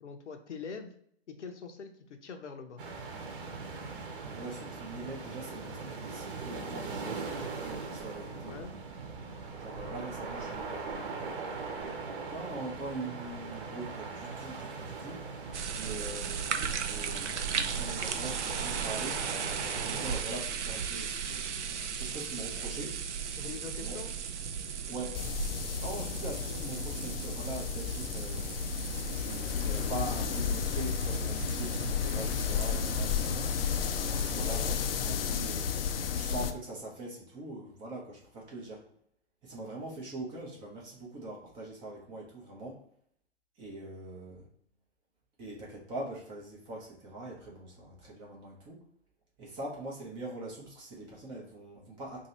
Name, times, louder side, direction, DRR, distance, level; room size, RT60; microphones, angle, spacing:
voice 1, 0.0-0.9 1.3-2.8 8.3-8.7 23.4-24.1 34.5-34.8, left 5 dB, 80° left, 6 dB, 0.8 m, -43 dB
sound 1, 2.8-20.2, right 4 dB, 50° right, 0.9 m, -40 dB
voice 2, 4.2-8.6 9.6-11.2 12.3-15.2 15.7-19.3 19.8-23.0 23.8-24.0 24.9-25.2 25.8-28.5 29.2-33.6 34.2-35.7 36.1-38.8 39.4-42.8 43.6-44.5 45.4-48.8 49.4-52.3, right 2 dB, 15° right, -3 dB, 0.5 m, -42 dB
sound 2, 15.5-34.7, right 7 dB, 75° right, 0.6 m, -37 dB
sound 3, 25.1-36.5, left 8 dB, 55° left, 0.4 m, -33 dB
2.7 x 2.5 x 4.2 m, 0.65 s
hypercardioid pair, 135°, 35 cm